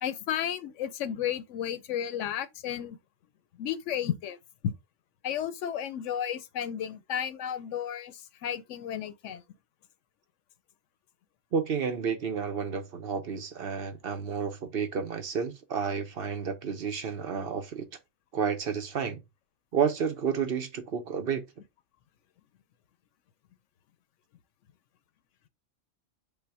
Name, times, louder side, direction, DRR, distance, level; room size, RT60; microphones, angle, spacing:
voice 1, 0.0-3.0 3.6-4.4 5.2-9.4, left 10 dB, 85° left, 1.0 m, -33 dB
voice 2, 11.5-17.9 18.3-19.2 19.7-21.4, right 6 dB, 55° right, 0.9 m, -31 dB
5.5 x 2.1 x 4.7 m
omnidirectional pair, 1.2 m